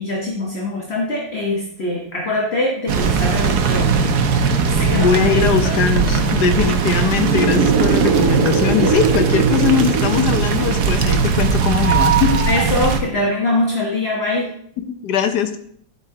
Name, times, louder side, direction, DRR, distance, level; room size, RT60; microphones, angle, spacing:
voice 1, 0.0-4.2 4.7-5.8 12.5-14.5, left 2 dB, 40° left, -1 dB, 1.3 m, -23 dB
sound 1, 2.9-13.0, right 5 dB, 65° right, 1.2 m, -18 dB
voice 2, 5.0-12.4 14.9-15.6, left 7 dB, 65° left, 7 dB, 1.3 m, -20 dB
11.5 x 7.9 x 2.9 m, 0.63 s
omnidirectional pair, 2.1 m